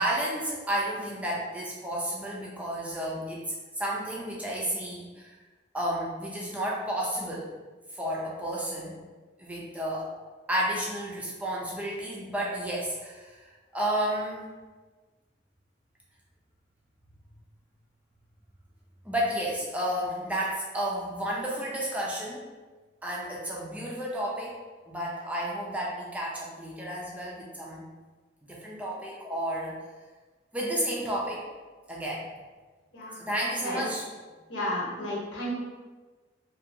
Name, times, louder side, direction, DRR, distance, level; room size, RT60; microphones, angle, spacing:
voice 1, 0.0-5.3 5.7-7.5 7.9-9.0 9.4-10.1 10.5-13.4 13.7-14.5 19.1-22.5 23.0-24.6 24.9-27.8 28.5-29.7 30.5-31.4 31.9-32.3 33.2-34.0, right 1 dB, 10° right, -4 dB, 0.4 m, -31 dB
voice 2, 34.5-35.5, left 1 dB, 85° left, -6 dB, 1.0 m, -32 dB
2.7 x 2.6 x 2.6 m, 1.3 s
head